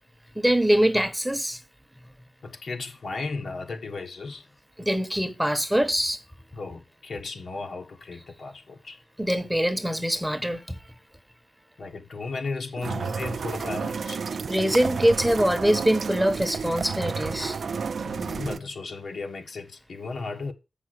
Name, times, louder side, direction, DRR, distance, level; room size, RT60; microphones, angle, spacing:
voice 1, 0.4-1.6 4.8-6.2 9.2-10.8 14.5-17.6, equal, 5° right, 1.0 m, -23 dB
voice 2, 2.4-4.5 6.5-9.0 11.8-14.2 18.0-20.5, left 3 dB, 75° left, 1.4 m, -35 dB
sound 1, 12.8-18.6, right 5 dB, 75° right, 0.4 m, -31 dB
7.6 x 5.9 x 6.2 m
wide cardioid pair, 85°, 0 cm